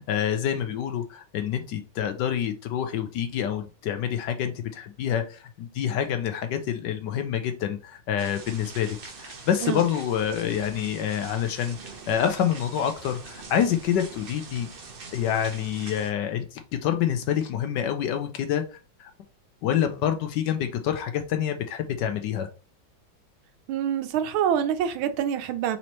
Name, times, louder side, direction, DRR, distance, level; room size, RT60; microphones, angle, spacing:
voice 1, 0.0-11.8 12.1-14.7 15.1-18.6 19.0-19.1 19.6-22.5, left 9 dB, 75° left, 1.1 m, -27 dB
sound 1, 8.2-16.1, right 4 dB, 65° right, 0.5 m, -43 dB
voice 2, 23.7-25.8, right 9 dB, 90° right, 1.5 m, -26 dB
4.3 x 4.1 x 3.0 m
omnidirectional pair, 2.2 m